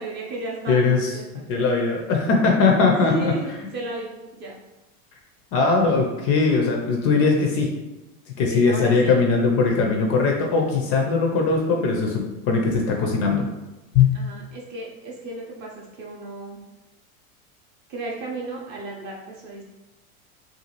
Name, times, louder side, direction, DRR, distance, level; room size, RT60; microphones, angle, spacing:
voice 1, 0.0-0.8 1.1-1.4 3.0-4.6 8.5-9.2 14.1-16.6 17.9-19.6, right 2 dB, 25° right, -2 dB, 0.4 m, -34 dB
voice 2, 0.7-1.1 1.5-3.3 5.5-7.7 8.4-13.4 13.9-14.2, left 4 dB, 35° left, 1 dB, 0.4 m, -20 dB
2.6 x 2.3 x 2.9 m, 1.0 s
hypercardioid pair, 105°, 44 cm